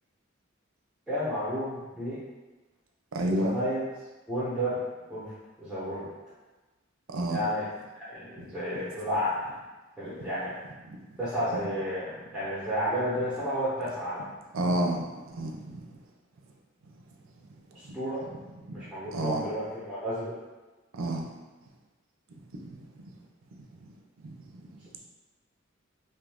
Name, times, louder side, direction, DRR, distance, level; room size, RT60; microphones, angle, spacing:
voice 1, 1.1-2.2 3.3-3.8 4.3-4.8 5.1-5.3 5.6-6.1 7.3-7.6 7.9-9.5 10.0-10.5 11.2-14.2 17.7-18.2 18.7-20.3, equal, ahead, -12 dB, 0.8 m, -31 dB
voice 2, 3.1-3.5 7.1-7.4 10.2-10.3 10.9-11.0 14.5-15.8 17.9-18.0 19.1-19.4 20.9-21.2 24.2-24.4, right 1 dB, 80° right, 2 dB, 0.5 m, -29 dB
2.7 x 2.5 x 3.4 m, 1.2 s
head